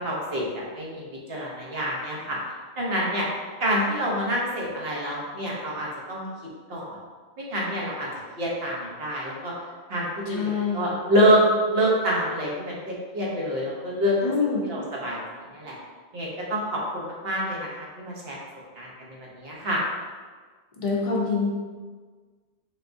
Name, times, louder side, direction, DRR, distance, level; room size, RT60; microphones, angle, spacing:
voice 1, 0.0-2.4 2.8-3.3 3.6-6.3 6.7-7.0 7.4-8.1 8.4-9.5 9.9-11.4 11.7-14.2 14.6-15.8 16.1-18.4 18.8-19.8, equal, 55° right, -4 dB, 1.0 m, -27 dB
voice 2, 10.3-10.9 14.2-14.7 20.8-21.5, left 4 dB, 35° left, -3 dB, 0.6 m, -25 dB
4.0 x 3.4 x 2.6 m, 1.5 s
omnidirectional pair, 1.3 m